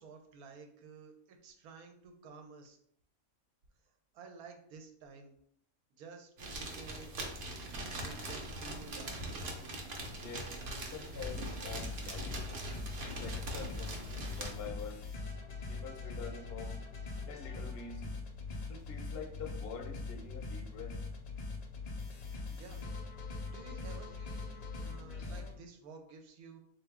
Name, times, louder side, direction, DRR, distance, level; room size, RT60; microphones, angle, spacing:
voice 1, 0.0-2.8 4.1-5.3 6.0-7.1 8.0-9.2 22.5-22.8 23.5-26.6, right 4 dB, 90° right, 4 dB, 1.1 m, -52 dB
sound 1, 6.4-14.5, right 1 dB, 55° right, 0.8 m, -42 dB
voice 2, 10.2-12.4 12.9-15.1 15.7-16.8 17.3-18.0 18.7-21.0, left 5 dB, 60° left, 4 dB, 0.7 m, -46 dB
sound 2, 11.1-25.5, left 3 dB, 90° left, 0.3 m, -42 dB
3.7 x 2.6 x 3.4 m, 0.66 s
omnidirectional pair, 1.5 m